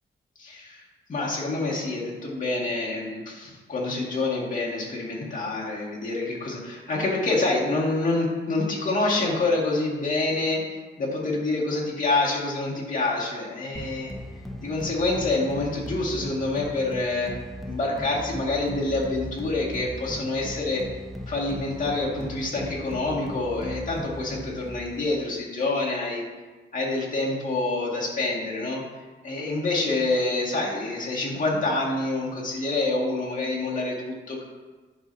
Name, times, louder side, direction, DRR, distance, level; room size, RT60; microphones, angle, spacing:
voice 1, 0.4-0.8 1.1-14.1 14.6-17.4 17.7-20.8 21.3-26.2 26.7-28.8 29.2-34.4, left 2 dB, 40° left, -5 dB, 1.9 m, -27 dB
sound 1, 13.7-25.2, equal, ahead, 0.6 m, -38 dB
11.0 x 5.7 x 2.7 m, 1.3 s
wide cardioid pair, 150°, 21 cm